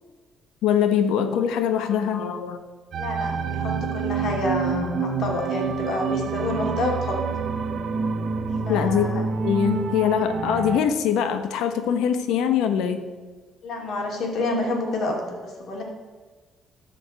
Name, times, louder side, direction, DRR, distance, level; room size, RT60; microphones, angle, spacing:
voice 1, 0.6-2.6 8.7-9.1 9.4-13.1, left 8 dB, 90° left, 8 dB, 1.1 m, -23 dB
sound 1, 2.9-10.8, right 5 dB, 45° right, 0.8 m, -27 dB
voice 2, 3.0-7.2 8.7-9.2 13.6-15.8, left 2 dB, 55° left, 0 dB, 2.8 m, -28 dB
13.0 x 5.3 x 7.8 m, 1.4 s
cardioid pair, 135°, 0 cm